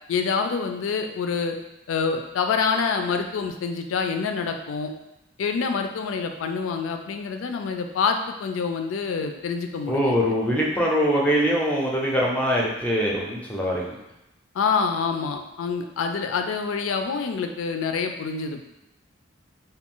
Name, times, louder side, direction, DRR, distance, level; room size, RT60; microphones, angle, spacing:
voice 1, 0.1-1.6 1.9-4.9 5.4-10.1 14.5-18.7, left 5 dB, 80° left, 5 dB, 0.3 m, -26 dB
voice 2, 9.9-14.0, equal, 5° left, -3 dB, 0.5 m, -23 dB
2.4 x 2.2 x 3.6 m, 0.93 s
head